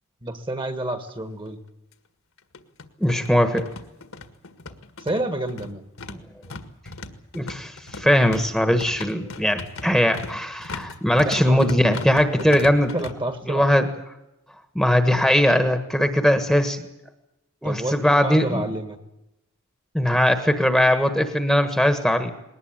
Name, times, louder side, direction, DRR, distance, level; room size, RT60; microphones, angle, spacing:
voice 1, 0.2-1.6 5.0-5.9 11.2-11.6 12.4-12.5 12.8-13.7 17.6-19.0, right 1 dB, 20° right, 10 dB, 1.6 m, -29 dB
sound 1, 1.1-1.2 1.4-1.5 2.4-13.1, left 3 dB, 65° left, 1.8 m, -38 dB
voice 2, 3.0-3.7 6.1-6.2 7.3-12.9 13.5-13.9 14.7-16.9 17.6-18.6 19.9-22.3, equal, ahead, 8 dB, 1.4 m, -20 dB
20.5 x 19.0 x 8.9 m, 0.90 s
head